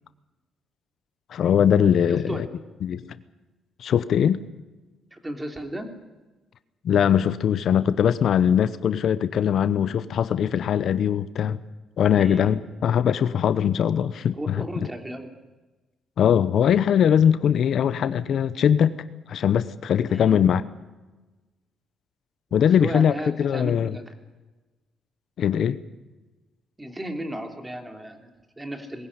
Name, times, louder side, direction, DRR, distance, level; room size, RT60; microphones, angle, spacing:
voice 1, 1.3-2.5 2.8-3.2 3.8-4.4 6.8-11.6 12.0-14.6 16.2-18.9 19.3-20.6 22.5-23.1 23.4-23.9 25.4-25.8, left 8 dB, 65° left, 14 dB, 0.9 m, -21 dB
voice 2, 2.1-2.4 5.1-6.0 12.2-12.6 14.3-15.4 20.1-20.4 22.5-24.1 26.8-29.1, right 1 dB, 15° right, 5 dB, 3.3 m, -35 dB
20.5 x 16.5 x 9.8 m, 1.2 s
cardioid pair, 90°, 0 cm